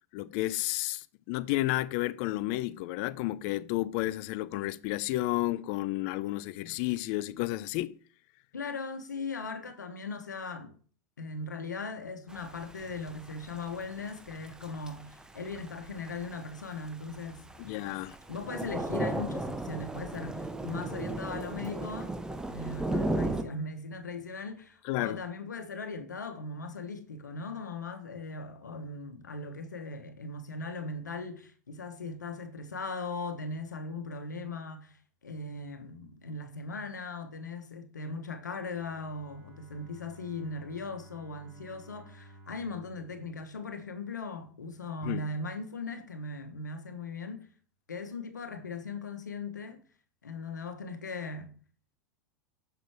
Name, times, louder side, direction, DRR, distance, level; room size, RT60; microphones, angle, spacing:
voice 1, 0.1-8.0 17.6-18.2 24.8-25.2 45.0-45.2, left 17 dB, 50° left, 0.4 m, -31 dB
voice 2, 8.5-10.7 11.2-18.0 18.3-22.2 22.5-35.0 35.2-47.5 47.9-49.8 50.2-51.5, left 3 dB, 85° left, 1.0 m, -39 dB
Thunder / Rain, 12.3-23.4, right 2 dB, 5° right, 0.7 m, -36 dB
Bowed string instrument, 38.5-44.4, right 1 dB, 25° right, 2.3 m, -55 dB
6.7 x 6.2 x 3.4 m
figure-of-eight pair, 90°, 9 cm